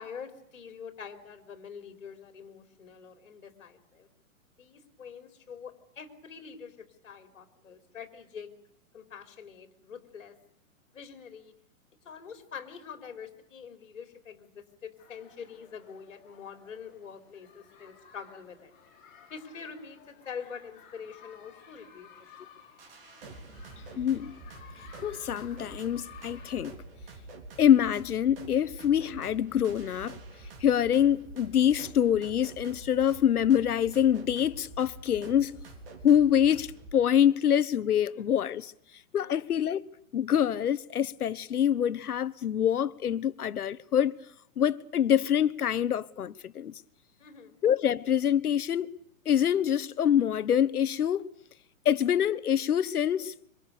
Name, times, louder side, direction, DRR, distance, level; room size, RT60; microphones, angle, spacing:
voice 1, 0.0-4.1 4.6-8.5 8.9-10.4 10.9-11.5 12.0-18.7 19.3-22.1 22.4-22.5 38.1-38.3 39.1-39.5 47.2-47.6, left 6 dB, 55° left, 4.3 m, -45 dB
sound 1, 15.0-26.6, left 7 dB, 35° left, 7.4 m, -55 dB
sound 2, 22.8-36.9, right 2 dB, 40° right, 3.6 m, -46 dB
voice 2, 24.0-24.4 25.0-26.7 27.6-30.2 30.6-35.6 36.0-38.7 39.1-39.8 40.1-44.1 44.6-46.8 47.6-48.9 49.2-51.3 51.8-53.3, left 9 dB, 85° left, 1.4 m, -25 dB
26.5 x 24.5 x 6.8 m
hypercardioid pair, 180°, 44 cm